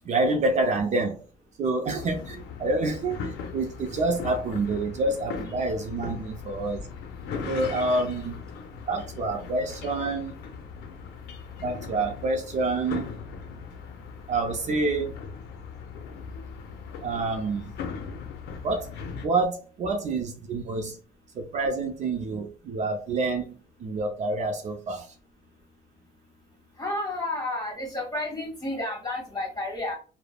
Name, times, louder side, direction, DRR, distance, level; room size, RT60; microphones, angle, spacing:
voice 1, 0.0-1.2 1.6-6.9 7.4-8.4 8.9-10.3 11.6-13.2 14.3-15.1 17.0-17.7 18.6-18.9 19.2-21.0 21.3-25.1, right 3 dB, 45° right, 0.5 m, -27 dB
sound 1, 1.8-19.3, left 5 dB, 80° left, 0.5 m, -39 dB
voice 2, 26.8-30.0, left 2 dB, 25° left, 1.3 m, -31 dB
3.1 x 2.0 x 2.2 m
cardioid pair, 110°, 17 cm